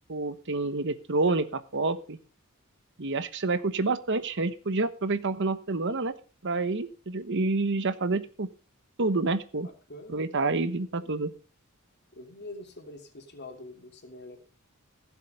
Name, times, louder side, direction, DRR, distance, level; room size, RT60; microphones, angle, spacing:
voice 1, 0.1-2.2 3.0-6.1 6.4-8.5 9.0-9.7 10.1-11.3, right 3 dB, 60° right, 13 dB, 1.1 m, -28 dB
voice 2, 9.6-10.3 11.0-11.2 12.1-14.4, left 2 dB, 50° left, 4 dB, 2.9 m, -45 dB
15.5 x 7.6 x 5.3 m, 0.36 s
head